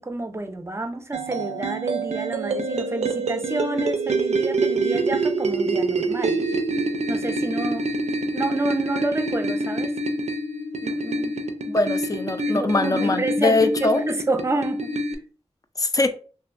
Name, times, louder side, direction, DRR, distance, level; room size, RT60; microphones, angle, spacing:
voice 1, 0.0-6.4 7.1-8.1 8.3-9.9 10.8-11.4 12.5-14.9, right 2 dB, 25° right, 0.5 m, -29 dB
sound 1, 1.1-15.2, right 2 dB, 80° right, 0.4 m, -26 dB
voice 2, 11.7-14.0 15.8-16.1, left 2 dB, 30° left, 0.4 m, -22 dB
2.9 x 2.6 x 2.4 m
wide cardioid pair, 50°, 11 cm